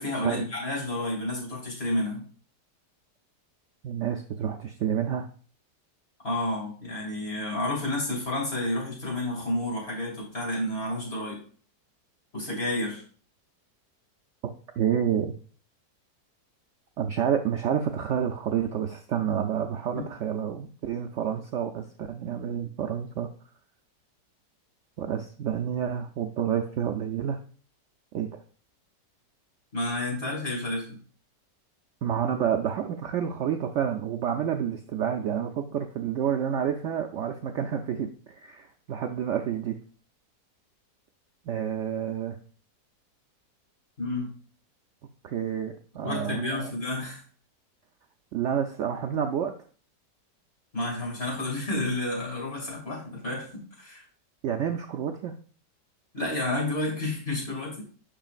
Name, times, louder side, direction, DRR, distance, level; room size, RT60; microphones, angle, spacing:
voice 1, 0.0-2.2 6.2-11.4 12.3-13.0 19.9-20.0 29.7-31.0 44.0-44.3 46.0-47.2 50.7-53.5 53.8-54.0 56.1-57.8, left 1 dB, 35° left, -2 dB, 2.5 m, -30 dB
voice 2, 3.8-5.3 14.8-15.3 17.0-23.3 25.0-27.4 28.1-28.3 32.0-39.8 41.5-42.4 45.2-46.7 48.3-49.5 54.4-55.4, right 8 dB, 80° right, 4 dB, 0.6 m, -29 dB
8.9 x 5.5 x 2.4 m, 0.42 s
omnidirectional pair, 1.8 m